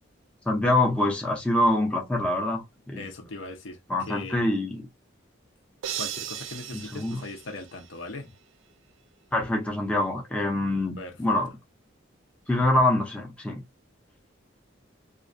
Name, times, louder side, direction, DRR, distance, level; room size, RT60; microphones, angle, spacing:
voice 1, 0.5-3.1 3.9-4.9 6.7-7.2 9.3-11.6 12.5-13.6, left 1 dB, 5° left, 0.4 m, -25 dB
voice 2, 3.0-3.8 4.1-4.6 6.0-8.3 11.0-11.2, left 3 dB, 75° left, 0.6 m, -39 dB
sound 1, 5.8-8.2, right 10 dB, 80° right, 0.4 m, -37 dB
2.3 x 2.1 x 2.4 m
head